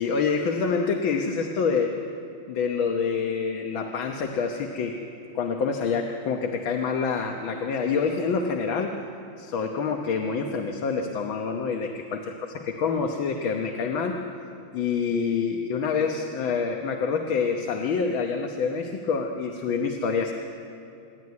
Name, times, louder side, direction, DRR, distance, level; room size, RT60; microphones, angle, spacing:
voice 1, 0.0-1.9 2.5-5.0 5.4-9.0 9.4-12.2 12.8-14.2 14.7-20.3, left 5 dB, 85° left, 3 dB, 1.9 m, -26 dB
26.5 x 11.0 x 9.5 m, 2.6 s
omnidirectional pair, 2.1 m